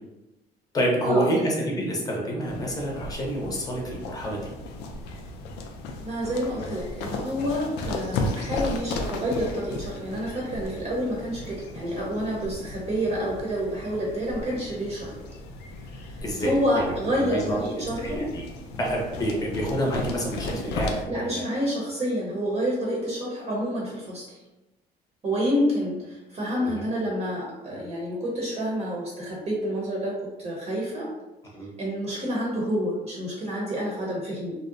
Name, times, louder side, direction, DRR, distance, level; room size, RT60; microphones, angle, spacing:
voice 1, 0.7-4.5 16.2-16.8 17.2-17.6 18.0-18.4 18.7-21.4 26.6-26.8 31.5-31.7, right 1 dB, 20° left, -2 dB, 0.7 m, -28 dB
sound 1, 2.5-21.1, left 2 dB, 85° left, 0.4 m, -35 dB
voice 2, 6.0-15.1 16.4-18.2 21.1-24.4 25.2-31.1 31.8-34.6, equal, 40° right, -5 dB, 0.7 m, -28 dB
2.6 x 2.0 x 2.5 m, 1.0 s
cardioid pair, 110°, 17 cm